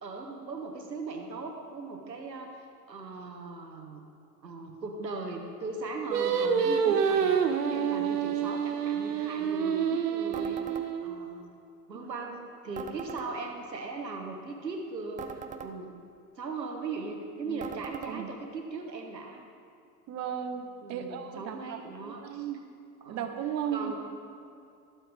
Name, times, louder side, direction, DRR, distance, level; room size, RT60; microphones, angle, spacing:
voice 1, 0.0-2.5 2.9-4.0 4.4-10.6 11.0-11.5 11.9-15.9 16.4-19.5 20.8-22.5 23.0-23.3 23.7-24.0, right 3 dB, 85° right, 3 dB, 1.4 m, -39 dB
Singing, 6.1-11.4, right 7 dB, 70° right, 1.1 m, -28 dB
sound 1, 10.3-10.9 12.8-13.3 15.2-15.7 17.6-18.1, right 7 dB, 15° right, 0.5 m, -41 dB
voice 2, 20.1-21.8 22.0-22.6 23.1-24.0, right 8 dB, 35° right, 5 dB, 1.1 m, -35 dB
21.0 x 7.3 x 3.6 m, 2.5 s
figure-of-eight pair, 85°, 49 cm